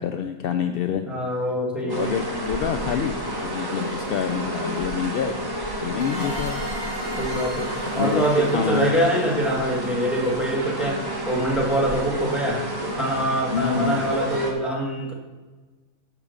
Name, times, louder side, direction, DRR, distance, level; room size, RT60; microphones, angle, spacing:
voice 1, 0.0-1.0 1.8-5.5 5.8-6.6 8.0-9.0 13.5-14.1, left 8 dB, 75° left, 7 dB, 0.5 m, -27 dB
voice 2, 1.1-2.0 7.2-7.7 7.9-11.0 11.2-15.1, right 1 dB, ahead, -2 dB, 1.7 m, -24 dB
sound 1, 1.9-14.5, right 1 dB, 15° right, 1.1 m, -30 dB
sound 2, 6.0-10.5, left 1 dB, 35° left, 2.9 m, -38 dB
10.5 x 5.1 x 6.5 m, 1.3 s
omnidirectional pair, 1.5 m